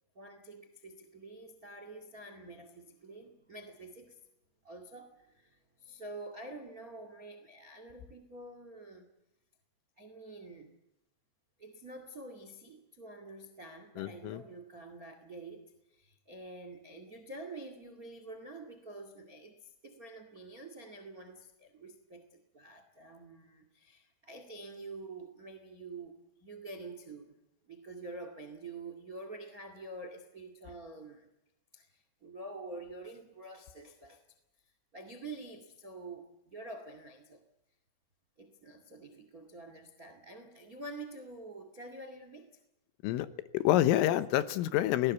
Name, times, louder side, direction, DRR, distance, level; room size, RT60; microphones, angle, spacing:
voice 1, 0.1-4.3 4.6-9.1 10.0-10.8 11.6-27.4 27.6-31.3 31.7-34.2 34.9-37.4 38.4-42.6, right 2 dB, 75° right, 8 dB, 0.8 m, -47 dB
voice 2, 14.0-14.4 43.0-43.3 43.5-45.1, left 14 dB, 80° left, 12 dB, 3.6 m, -27 dB
24.5 x 18.5 x 8.3 m, 0.92 s
omnidirectional pair, 5.8 m